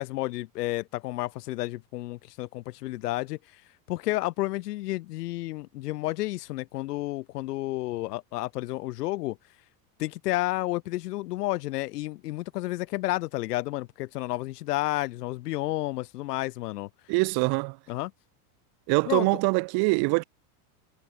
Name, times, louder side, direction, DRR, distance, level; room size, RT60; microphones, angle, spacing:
voice 1, 0.0-3.4 3.9-9.4 10.0-16.9 17.9-18.1 19.1-19.3, left 18 dB, 85° left, 4.5 m, -31 dB
voice 2, 17.1-17.8 18.9-20.2, right 30 dB, 55° right, 6.1 m, -24 dB
supercardioid pair, 150°, 46 cm